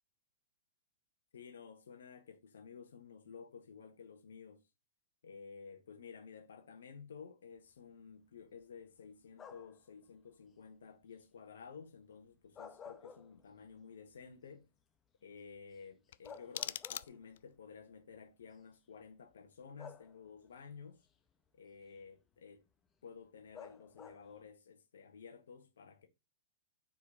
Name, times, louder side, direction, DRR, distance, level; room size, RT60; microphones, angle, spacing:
voice 1, 1.3-4.6 5.2-14.7 15.2-21.1 21.5-22.6 23.0-26.1, left 6 dB, 85° left, 1.5 m, -53 dB
sound 1, 9.3-9.9 12.3-13.7 14.1-14.2 15.8-15.9 16.2-17.4 18.4-18.5 19.8-20.5 23.5-24.4, left 6 dB, 20° left, 1.2 m, -53 dB
sound 2, 16.1-17.6, left 12 dB, 65° left, 0.3 m, -43 dB
4.9 x 4.5 x 5.6 m
hypercardioid pair, 135°, 0 cm